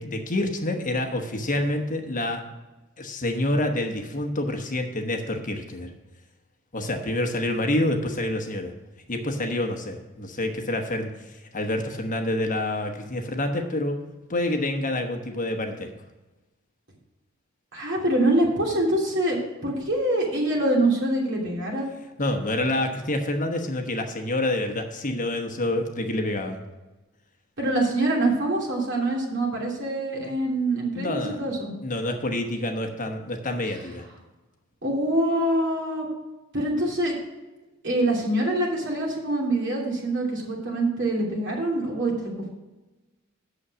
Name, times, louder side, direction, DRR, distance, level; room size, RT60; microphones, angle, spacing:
voice 1, 0.0-2.4 3.0-5.9 6.7-8.7 9.1-14.0 14.3-15.9 22.2-26.6 30.9-31.4 31.8-34.1, left 1 dB, 40° left, 4 dB, 1.1 m, -27 dB
voice 2, 17.7-21.9 27.6-31.7 34.8-36.1 36.5-37.2 37.8-42.1, right 1 dB, 60° right, -2 dB, 2.9 m, -25 dB
8.4 x 7.0 x 6.1 m, 1.1 s
head